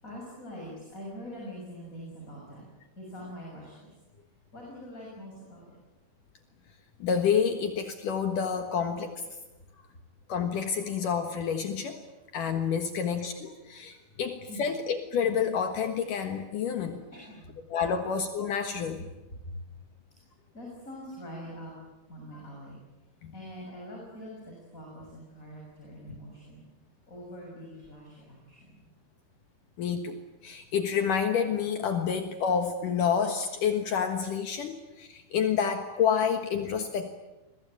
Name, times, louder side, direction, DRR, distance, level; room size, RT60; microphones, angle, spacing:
voice 1, 0.0-2.7 3.0-3.9 4.5-5.8 12.8-13.0 13.9-14.0 14.5-14.6 17.1-17.5 19.3-19.7 20.5-21.7 22.1-22.8 23.3-26.6 27.1-28.9, equal, 20° left, -2 dB, 7.5 m, -44 dB
voice 2, 7.0-9.2 10.3-12.0 12.3-17.0 17.7-19.1 23.2-23.3 29.8-30.2 30.4-37.1, left 7 dB, 65° left, 6 dB, 3.0 m, -29 dB
28.5 x 22.5 x 8.9 m, 1.0 s
omnidirectional pair, 4.2 m